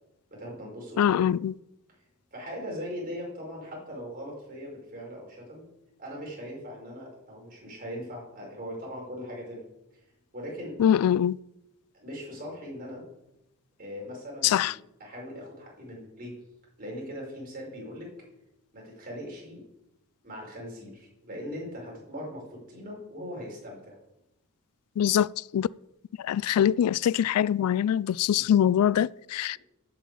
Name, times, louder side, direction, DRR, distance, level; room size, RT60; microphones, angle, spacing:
voice 1, 0.3-1.2 2.3-5.6 6.0-9.6 10.3-10.8 11.9-13.0 13.8-16.4 16.8-18.1 18.7-19.6 20.2-24.0 28.3-28.5, equal, 40° right, 5.5 m, -40 dB
voice 2, 1.0-1.5 10.8-11.4 14.4-14.7 25.0-25.3 25.5-25.7 26.2-29.6, left 10 dB, 90° left, 0.3 m, -23 dB
9.2 x 8.3 x 8.5 m
head